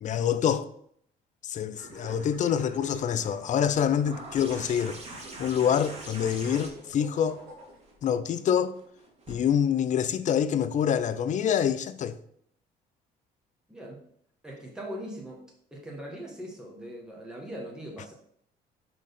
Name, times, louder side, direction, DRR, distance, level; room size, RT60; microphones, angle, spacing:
voice 1, 0.0-0.7 1.4-5.0 5.4-7.4 8.0-8.7 9.3-12.2, left 8 dB, 45° left, 0.5 m, -26 dB
sound 1, 1.7-8.0, right 2 dB, 90° right, 2.9 m, -47 dB
sound 2, 4.1-9.4 10.7-10.8, right 2 dB, 40° right, 2.0 m, -44 dB
voice 2, 13.7-14.0 14.4-15.4 15.7-18.1, equal, 5° right, 1.4 m, -40 dB
6.1 x 3.7 x 5.2 m
cardioid pair, 110°, 17 cm